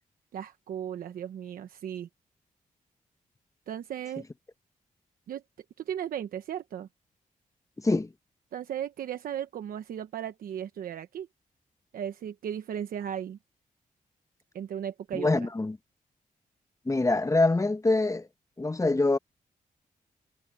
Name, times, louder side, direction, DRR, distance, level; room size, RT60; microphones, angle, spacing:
voice 1, 0.3-2.1 3.7-4.2 5.3-5.4 5.8-6.9 8.5-11.3 11.9-13.4 14.5-15.5, right 9 dB, 85° right, 1.0 m, -36 dB
voice 2, 7.8-8.1 15.1-15.8 16.8-18.3 18.6-19.2, left 2 dB, 20° left, 1.3 m, -25 dB
cardioid pair, 70°, 14 cm